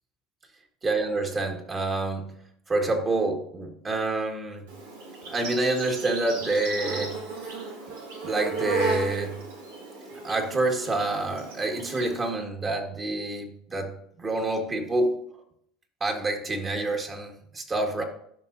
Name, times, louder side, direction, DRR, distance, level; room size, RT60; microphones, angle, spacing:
voice 1, 0.8-2.3 2.7-4.6 5.3-7.2 8.2-9.4 10.2-15.2 16.0-18.0, right 2 dB, 30° right, 3 dB, 1.9 m, -27 dB
Insect, 4.7-12.3, right 3 dB, 80° right, 2.0 m, -35 dB
12.5 x 5.6 x 2.7 m, 0.71 s
hypercardioid pair, 80°, 0 cm